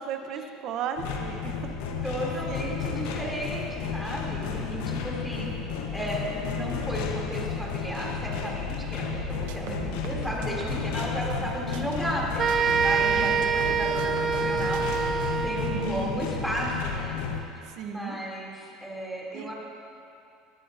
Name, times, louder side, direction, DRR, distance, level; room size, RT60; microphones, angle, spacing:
voice 1, 0.0-1.6 2.5-2.8 9.7-10.1 11.3-11.5 13.2-13.4 15.6-16.0 17.6-18.2 19.3-19.5, right 7 dB, 55° right, 6 dB, 1.0 m, -36 dB
sound 1, 1.0-17.4, left 6 dB, 80° left, 1.2 m, -32 dB
voice 2, 2.0-14.8 15.4-17.2 17.8-19.5, equal, ahead, -5 dB, 3.3 m, -34 dB
sound 2, 9.1-11.5 11.7-14.5 14.7-15.1, right 6 dB, 80° right, 0.8 m, -40 dB
sound 3, 12.4-16.0, right 7 dB, 40° right, 0.5 m, -26 dB
20.5 x 11.0 x 2.8 m, 2.6 s
supercardioid pair, 110°, 0 cm